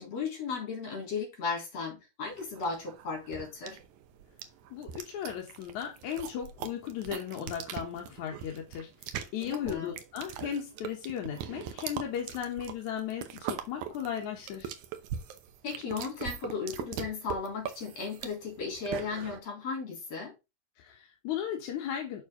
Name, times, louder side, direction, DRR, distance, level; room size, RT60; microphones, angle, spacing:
voice 1, 0.0-3.8 9.4-9.9 15.6-20.3, left 4 dB, 45° left, 4.2 m, -35 dB
sound 1, 2.4-19.4, right 9 dB, 75° right, 1.8 m, -41 dB
voice 2, 4.7-8.9 9.3-14.7 20.8-22.2, left 9 dB, 65° left, 2.0 m, -36 dB
6.7 x 6.3 x 3.8 m
omnidirectional pair, 4.6 m